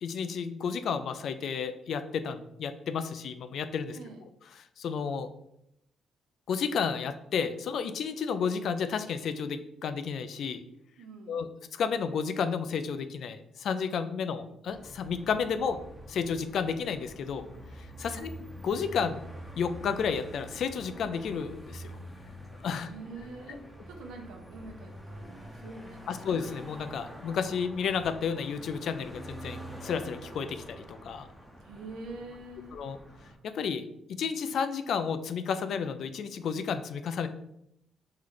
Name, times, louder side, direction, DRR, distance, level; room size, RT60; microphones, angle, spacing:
voice 1, 0.0-4.0 4.6-5.3 6.5-10.6 11.3-15.8 16.1-17.5 17.8-18.3 18.6-19.2 19.6-21.9 22.6-22.9 26.1-31.3 32.7-33.0 33.4-33.8 34.1-37.3, left 6 dB, 65° left, 10 dB, 0.4 m, -32 dB
voice 2, 11.0-11.5 18.0-18.3 22.9-26.3 31.6-32.8, right 3 dB, 85° right, 3 dB, 0.8 m, -45 dB
sound 1, 14.7-33.4, equal, 5° right, 0.8 m, -46 dB
3.3 x 3.1 x 3.8 m, 0.78 s
cardioid pair, 90°, 0 cm